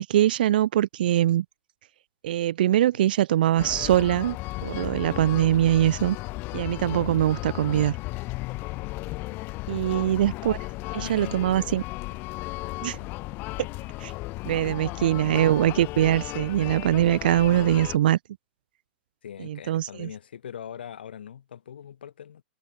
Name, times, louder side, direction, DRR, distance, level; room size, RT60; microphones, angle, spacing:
voice 1, 0.0-1.4 2.2-4.4 4.6-6.2 6.5-8.0 9.7-10.6 10.9-11.8 12.8-13.0 14.0-14.1 14.5-18.2 19.4-20.1, right 12 dB, 60° right, 0.4 m, -22 dB
sound 1, 3.6-18.0, left 22 dB, 40° left, 1.4 m, -35 dB
voice 2, 10.9-11.5 19.2-22.4, left 9 dB, 65° left, 4.1 m, -41 dB
figure-of-eight pair, 95°, 6 cm